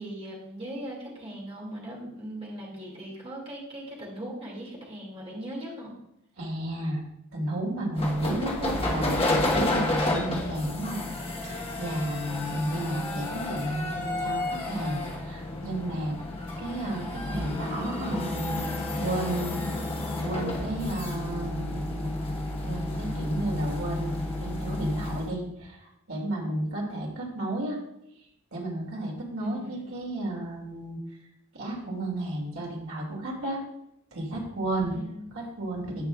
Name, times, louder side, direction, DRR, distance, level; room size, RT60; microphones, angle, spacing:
voice 1, 0.0-5.9 29.4-29.8 34.9-35.3, right 1 dB, 25° right, -3 dB, 2.3 m, -39 dB
voice 2, 6.4-7.0 7.3-16.2 16.6-19.9 20.2-22.1 22.6-27.8 28.5-31.0 31.5-33.6 34.1-35.0 35.3-36.1, right 1 dB, 70° right, -1 dB, 2.5 m, -32 dB
sound 1, 8.0-25.3, left 2 dB, 25° left, 1.2 m, -31 dB
16.5 x 5.5 x 2.4 m, 0.81 s
head